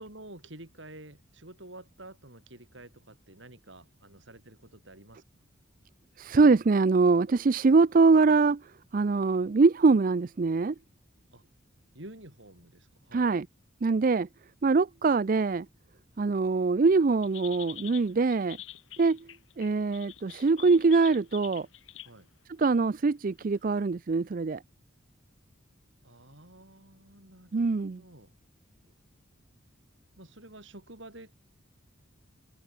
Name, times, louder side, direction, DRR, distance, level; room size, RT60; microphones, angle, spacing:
voice 1, 0.0-5.2 11.3-11.4 11.9-13.3 22.0-22.3 26.0-28.3 30.2-31.5, right 1 dB, 65° right, 6.3 m, -49 dB
voice 2, 6.2-8.6 8.9-10.7 13.1-13.5 13.8-14.3 14.6-15.7 16.2-18.6 19.0-19.2 19.6-21.7 22.6-24.6 27.5-28.0, right 4 dB, 45° right, 0.4 m, -23 dB
sound 1, 17.2-22.1 22.6-22.9 23.4-23.5, left 14 dB, 75° left, 1.9 m, -46 dB
head